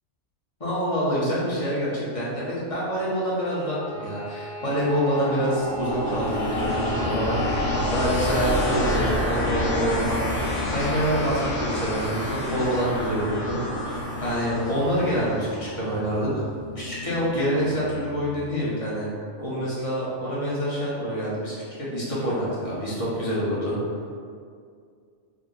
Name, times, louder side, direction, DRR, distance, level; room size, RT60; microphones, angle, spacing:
voice 1, 0.6-13.6 13.8-16.3 16.7-19.1 19.4-23.8, equal, 30° left, -8 dB, 0.8 m, -26 dB
Bowed string instrument, 3.3-8.3, right 2 dB, ahead, 0.8 m, -38 dB
sound 1, 5.2-18.3, left 1 dB, 85° left, 1.0 m, -28 dB
3.6 x 2.0 x 3.9 m, 2.2 s
omnidirectional pair, 1.3 m